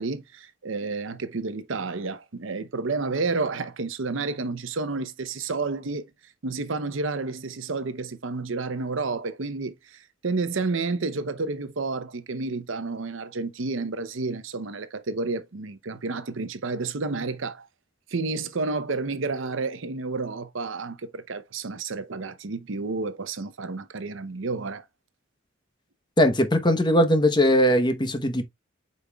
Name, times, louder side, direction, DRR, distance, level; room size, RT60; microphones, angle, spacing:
voice 1, 0.0-6.1 6.4-17.7 18.1-24.8, right 3 dB, 65° right, 0.7 m, -30 dB
voice 2, 26.2-28.4, equal, 20° left, 0.9 m, -20 dB
8.5 x 5.3 x 2.3 m
head